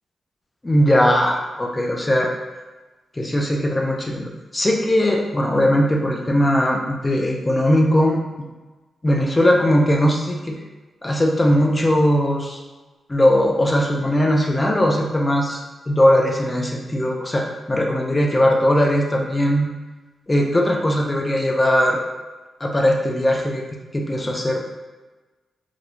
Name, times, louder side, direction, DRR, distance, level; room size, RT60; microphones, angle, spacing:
voice 1, 0.6-2.3 3.2-8.2 9.0-10.6 11.0-12.6 13.1-15.6 15.9-19.7 20.3-22.0 22.6-23.6 23.9-24.6, equal, 20° left, 0 dB, 0.3 m, -19 dB
2.3 x 2.0 x 3.0 m, 1.2 s
wide cardioid pair, 120°, 0 cm